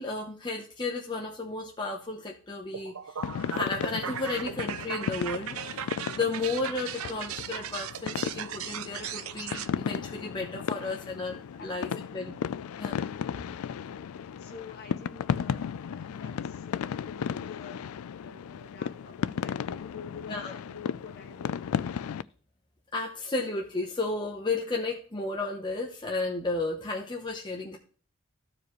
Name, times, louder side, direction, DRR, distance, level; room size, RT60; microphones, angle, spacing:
voice 1, 0.0-2.9 3.5-12.3 12.8-13.0 20.3-20.6 22.9-27.8, left 3 dB, 20° left, 0 dB, 0.8 m, -33 dB
sound 1, 2.7-9.7, right 9 dB, 80° right, 0.5 m, -37 dB
sound 2, 3.2-22.2, left 7 dB, 85° left, 0.3 m, -35 dB
voice 2, 11.6-12.0 13.6-17.8 18.2-21.8, left 5 dB, 50° left, 1 dB, 1.7 m, -48 dB
14.5 x 4.9 x 3.1 m, 0.40 s
head